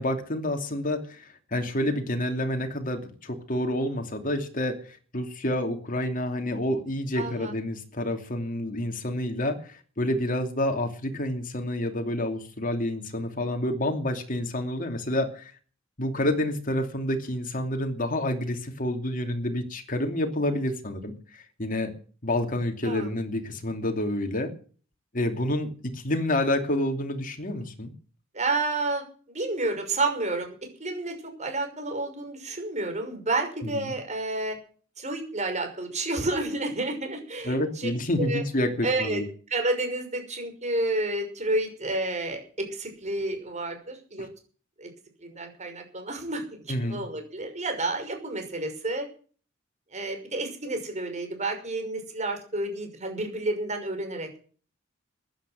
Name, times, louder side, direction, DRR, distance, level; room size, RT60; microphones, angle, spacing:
voice 1, 0.0-15.5 16.0-21.9 22.2-24.5 25.1-27.9 33.6-33.9 37.4-39.3 44.2-44.3 46.7-47.0, left 1 dB, 45° left, 5 dB, 2.8 m, -28 dB
voice 2, 7.2-7.5 22.8-23.1 28.3-34.6 35.0-37.9 38.2-38.4 38.8-39.2 39.5-44.3 44.8-44.9 45.2-46.4 46.8-49.1 49.9-54.4, right 2 dB, 35° right, 5 dB, 5.9 m, -30 dB
15.5 x 10.5 x 7.8 m, 0.41 s
head